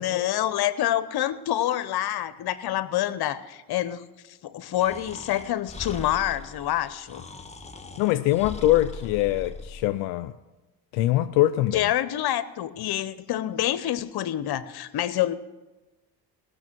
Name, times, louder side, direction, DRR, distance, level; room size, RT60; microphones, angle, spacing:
voice 1, 0.0-4.0 4.4-7.3 11.7-15.4, left 13 dB, 55° left, 0.8 m, -27 dB
Breathing, 4.8-9.9, left 3 dB, 15° left, 1.1 m, -40 dB
voice 2, 8.0-10.3 10.9-11.9, left 15 dB, 85° left, 0.5 m, -23 dB
18.0 x 6.5 x 6.1 m
supercardioid pair, 65°, 45 cm